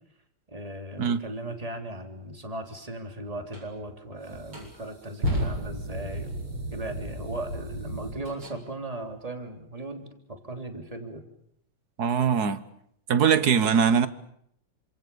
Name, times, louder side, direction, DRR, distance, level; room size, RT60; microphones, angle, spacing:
voice 1, 0.5-6.3 6.7-11.2, right 1 dB, 15° right, 3.3 m, -37 dB
sound 1, 3.5-3.7 4.3-8.6, equal, 75° right, 8.8 m, -33 dB
voice 2, 12.0-12.6 13.1-14.1, right 7 dB, 50° right, 1.7 m, -21 dB
28.5 x 26.0 x 7.0 m
omnidirectional pair, 2.4 m